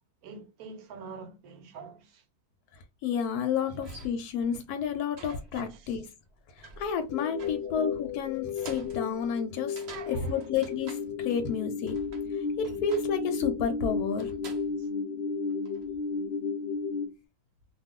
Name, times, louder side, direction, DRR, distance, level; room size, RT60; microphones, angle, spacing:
voice 1, 0.2-2.2 3.6-3.9 5.7-6.0 7.4-7.7 9.9-10.5 14.8-14.9, right 5 dB, 75° right, 1.1 m, -46 dB
voice 2, 2.7-6.1 6.5-9.8 10.1-12.0 12.3-14.3, left 6 dB, 85° left, 1.1 m, -31 dB
sound 1, 3.3-3.4 3.8-4.5 5.2-5.9 6.2-11.6 11.9-13.3 14.2-14.8 15.5-16.0, right 3 dB, 55° right, 0.9 m, -49 dB
sound 2, 7.1-17.1, left 5 dB, 65° left, 0.6 m, -33 dB
2.4 x 2.4 x 3.5 m
omnidirectional pair, 1.6 m